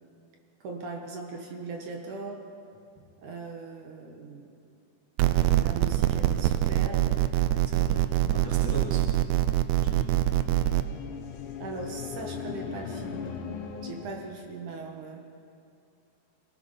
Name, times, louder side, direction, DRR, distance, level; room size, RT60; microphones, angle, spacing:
voice 1, 0.6-2.4 3.2-4.5 5.5-7.3 11.6-13.4 13.8-15.2, right 3 dB, 60° right, 2 dB, 2.9 m, -39 dB
sound 1, 5.2-10.8, right 14 dB, 80° right, 2.5 m, -24 dB
voice 2, 7.6-9.1 9.8-10.3 14.0-14.1, right 1 dB, 5° left, -3 dB, 1.7 m, -38 dB
sound 2, 9.8-14.4, left 7 dB, 65° left, 2.6 m, -39 dB
25.5 x 17.5 x 5.8 m, 2.6 s
omnidirectional pair, 4.2 m